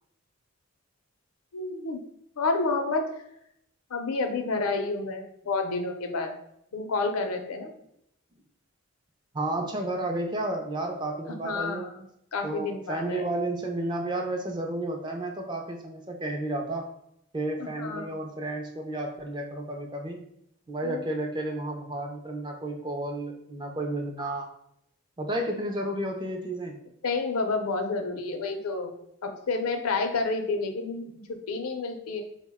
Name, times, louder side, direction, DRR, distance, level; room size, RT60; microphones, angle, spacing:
voice 1, 1.5-2.0 2.4-3.1 3.9-6.3 6.7-7.7 11.4-12.1 12.3-13.2 17.6-18.1 20.8-21.1 27.0-28.9 29.2-32.2, left 3 dB, 75° left, 5 dB, 0.5 m, -29 dB
voice 2, 9.3-11.9 12.4-16.9 17.3-20.2 20.7-24.5 25.2-26.8, right 1 dB, 20° right, 2 dB, 0.4 m, -32 dB
4.2 x 2.1 x 3.4 m, 0.76 s
head